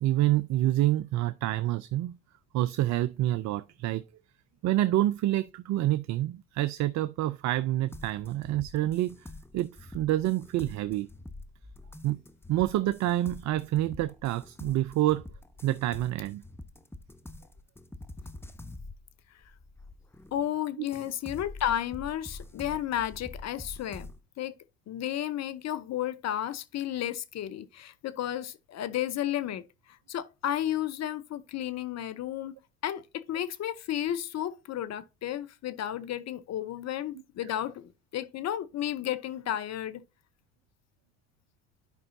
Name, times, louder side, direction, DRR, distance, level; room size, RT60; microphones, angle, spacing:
voice 1, 0.0-2.2 2.5-4.0 4.6-11.1 12.0-12.2 12.5-15.2 15.6-16.4, right 14 dB, 60° right, 0.5 m, -27 dB
sound 1, 7.9-20.5 20.9-24.2, left 2 dB, 10° left, 0.9 m, -46 dB
voice 2, 20.3-24.1 24.4-24.5 24.9-32.6 32.8-40.0, left 11 dB, 55° left, 0.8 m, -33 dB
10.5 x 5.4 x 2.6 m
hypercardioid pair, 55°, 31 cm